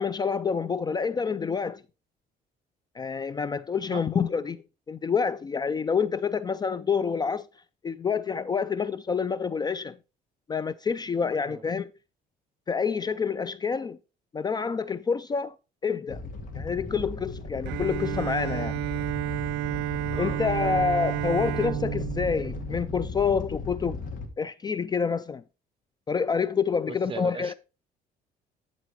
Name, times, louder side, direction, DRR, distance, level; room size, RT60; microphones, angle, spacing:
voice 1, 0.0-1.8 3.0-7.5 7.8-10.0 10.5-11.9 12.7-14.0 14.3-15.6 15.8-16.2 16.6-18.8 20.2-24.0 24.4-25.4 26.1-27.5, left 6 dB, 25° left, 0.4 m, -27 dB
Animal, 16.1-24.3, left 3 dB, 50° left, 2.4 m, -36 dB
Bowed string instrument, 17.7-23.5, right 14 dB, 85° right, 0.4 m, -31 dB
voice 2, 20.1-20.8 27.1-27.5, right 6 dB, 30° right, 0.9 m, -39 dB
11.5 x 4.1 x 4.7 m
cardioid pair, 110°, 17 cm